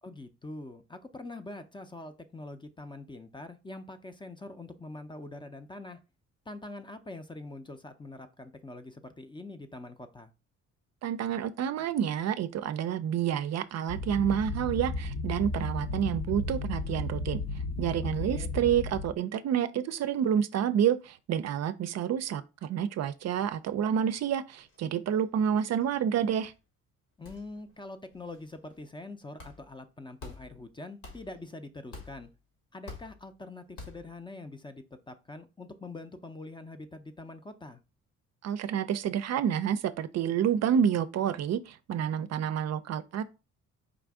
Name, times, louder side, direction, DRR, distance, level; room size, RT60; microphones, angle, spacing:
voice 1, 0.0-6.0 6.5-10.3 18.2-18.5 27.2-32.3 32.7-37.8, left 2 dB, 15° left, 0.5 m, -44 dB
voice 2, 11.0-17.4 17.8-26.5 38.4-43.2, right 9 dB, 60° right, 0.5 m, -29 dB
sound 1, 13.9-19.1, left 2 dB, 60° left, 0.8 m, -34 dB
sound 2, 24.6-24.9 25.2-25.3 25.5-26.1 26.4-26.6 27.2-27.8 28.1-28.8 29.4-29.8 30.2-30.7 31.0-31.5 31.9-32.4 32.9-33.3 33.8-34.2, left 3 dB, 80° left, 1.9 m, -48 dB
5.0 x 2.5 x 3.5 m
cardioid pair, 90°, 30 cm